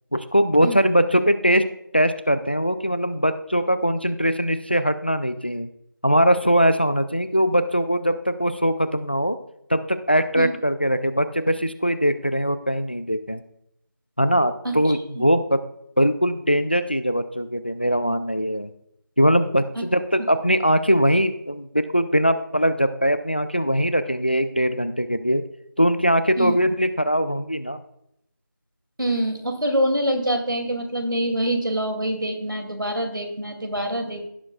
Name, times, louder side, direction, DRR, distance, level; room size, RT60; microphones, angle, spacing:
voice 1, 0.1-1.7 1.9-5.7 6.0-9.4 9.7-13.4 14.2-15.6 16.0-18.7 19.2-25.4 25.8-27.8, equal, 30° left, 12 dB, 0.4 m, -21 dB
voice 2, 14.6-15.2 19.7-19.8 20.2-20.3 26.4-26.6 29.0-34.3, right 1 dB, 80° right, 5 dB, 2.5 m, -25 dB
17.0 x 7.4 x 2.3 m, 0.75 s
figure-of-eight pair, 170°, 11 cm